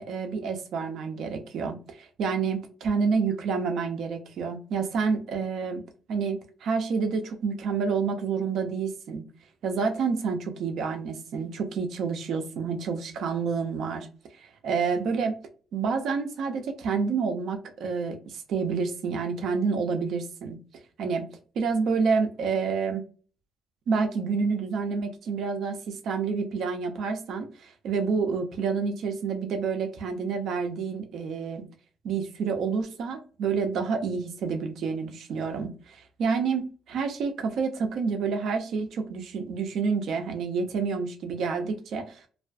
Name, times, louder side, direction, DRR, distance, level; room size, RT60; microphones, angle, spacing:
voice 1, 0.0-5.8 6.1-9.2 9.6-14.1 14.4-15.3 15.7-20.6 21.0-21.2 21.6-23.0 23.9-31.6 32.0-42.3, right 5 dB, 70° right, 5 dB, 0.6 m, -28 dB
2.4 x 2.3 x 2.5 m, 0.39 s
cardioid pair, 90°, 0 cm